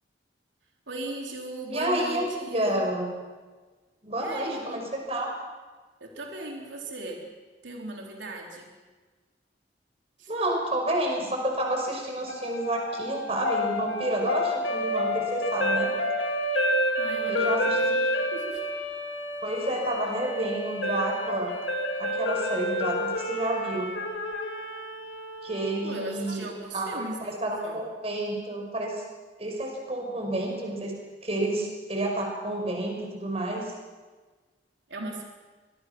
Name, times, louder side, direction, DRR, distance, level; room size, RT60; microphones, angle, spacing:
voice 1, 0.9-2.8 4.2-4.8 6.0-7.3 7.6-8.7 10.2-10.3 17.0-18.0 18.3-18.7 25.8-27.3 27.6-27.8 34.9-35.2, right 1 dB, 90° right, 0 dB, 3.8 m, -38 dB
voice 2, 1.7-3.1 4.0-5.3 10.3-15.9 17.3-18.1 19.4-21.5 22.0-23.9 25.4-26.4 26.7-29.0 29.4-30.9 31.2-33.6, right 1 dB, 35° right, 1 dB, 5.8 m, -30 dB
sound 1, 12.3-26.4, left 1 dB, 90° left, 2.6 m, -29 dB
25.5 x 22.5 x 6.2 m, 1.3 s
head